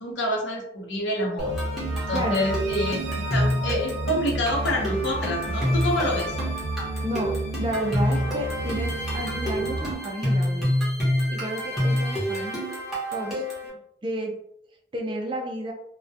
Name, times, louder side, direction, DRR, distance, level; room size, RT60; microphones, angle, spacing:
voice 1, 0.0-1.5 2.1-6.4, left 1 dB, 85° left, 0 dB, 0.7 m, -27 dB
sound 1, 1.4-13.7, equal, ahead, 0.8 m, -28 dB
sound 2, 1.4-9.9, right 2 dB, 85° right, 0.5 m, -31 dB
voice 2, 7.0-10.7 11.3-12.6 13.1-14.4 14.9-15.7, right 1 dB, 25° right, 1 dB, 0.4 m, -32 dB
2.2 x 2.1 x 2.6 m, 0.74 s
head